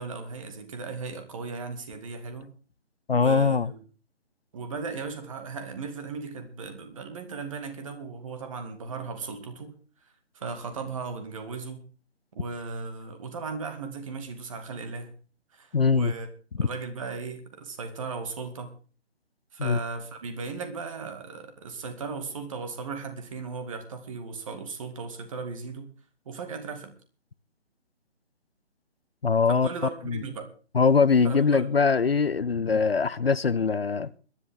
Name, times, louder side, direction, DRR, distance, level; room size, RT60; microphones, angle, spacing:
voice 1, 0.0-2.5 3.1-3.8 4.5-9.7 10.3-11.8 12.3-15.1 15.5-16.3 16.6-18.7 19.5-25.9 26.3-26.9 29.5-30.5 31.2-31.7, right 4 dB, 30° right, 2.2 m, -37 dB
voice 2, 3.1-3.7 15.7-16.1 16.6-16.7 19.6-19.8 29.2-29.7 30.1-30.2 30.7-34.1, left 5 dB, 60° left, 0.7 m, -22 dB
22.0 x 11.0 x 3.7 m
figure-of-eight pair, 145°, 35 cm